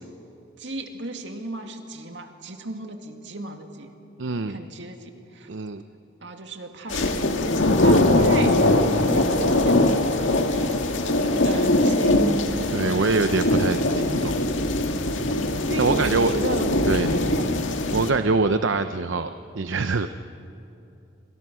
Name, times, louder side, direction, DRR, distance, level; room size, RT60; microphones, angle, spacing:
voice 1, 0.6-3.9 4.5-5.5 6.2-8.6 9.0-11.0 11.4-12.3 12.5-13.1 15.7-17.6, right 2 dB, 70° right, 5 dB, 2.3 m, -35 dB
voice 2, 4.2-4.6 5.5-5.8 12.7-14.4 15.8-16.3 16.9-17.1 17.9-20.1, right 3 dB, 85° right, 9 dB, 0.7 m, -24 dB
sound 1, 6.9-18.1, left 1 dB, 90° left, 1.8 m, -21 dB
28.5 x 25.5 x 6.3 m, 2.8 s
head